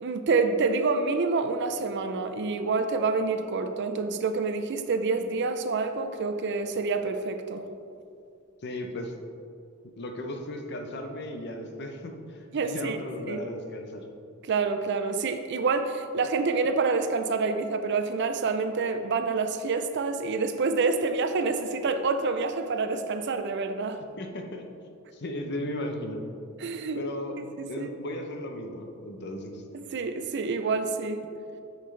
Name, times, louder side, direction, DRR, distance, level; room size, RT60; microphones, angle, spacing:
voice 1, 0.0-7.7 12.5-13.0 13.3-13.4 14.4-24.0 26.6-27.0 27.6-27.9 29.7-31.3, right 4 dB, 55° right, 8 dB, 0.5 m, -27 dB
voice 2, 8.6-9.1 10.0-12.1 12.6-14.0 24.2-24.6 25.1-26.2 26.9-27.4 27.7-29.6, left 1 dB, 55° left, 4 dB, 0.7 m, -35 dB
8.5 x 5.8 x 3.2 m, 2.5 s
head